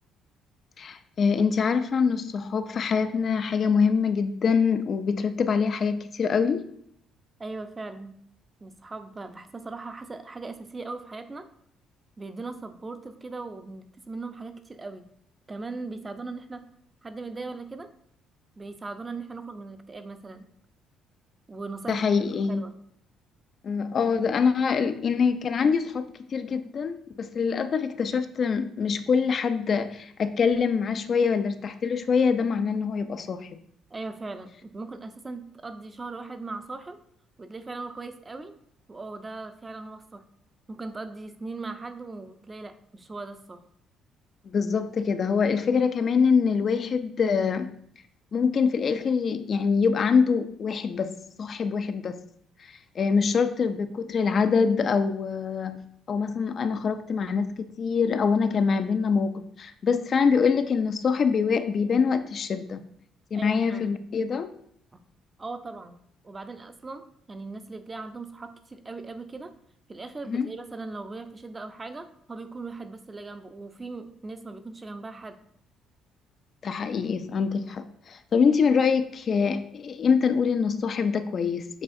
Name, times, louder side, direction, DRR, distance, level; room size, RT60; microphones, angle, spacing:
voice 1, 0.8-6.7 21.9-22.6 23.6-26.1 26.3-33.5 44.5-47.7 48.3-52.2 52.6-57.5 57.8-62.8 63.3-64.5 70.3-70.5 76.6-81.8, left 5 dB, 50° left, 10 dB, 0.3 m, -24 dB
voice 2, 7.4-8.2 8.6-11.5 12.2-15.1 15.5-16.6 17.0-17.9 18.6-20.5 21.5-22.0 22.5-22.8 33.9-37.0 37.4-38.5 38.9-40.2 40.7-43.6 63.3-64.0 64.9-65.0 65.4-69.5 69.9-75.4, right 3 dB, 25° right, 9 dB, 0.5 m, -39 dB
6.9 x 2.4 x 2.5 m, 0.68 s
supercardioid pair, 70°, 0 cm